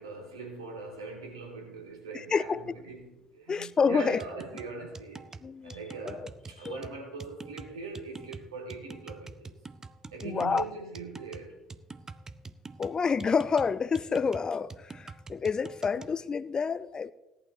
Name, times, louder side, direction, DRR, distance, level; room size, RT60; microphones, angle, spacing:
voice 1, 0.0-5.3 5.6-9.5 10.1-11.6 15.9-16.1, right 4 dB, 85° right, 2.4 m, -41 dB
voice 2, 2.1-2.6 3.5-4.2 5.4-5.8 6.1-6.3 6.6-6.8 10.2-10.6 12.8-17.1, left 5 dB, 30° left, 0.5 m, -28 dB
sound 1, 4.2-16.2, right 3 dB, 25° right, 0.6 m, -46 dB
17.0 x 11.5 x 3.1 m
figure-of-eight pair, 55°, 2 cm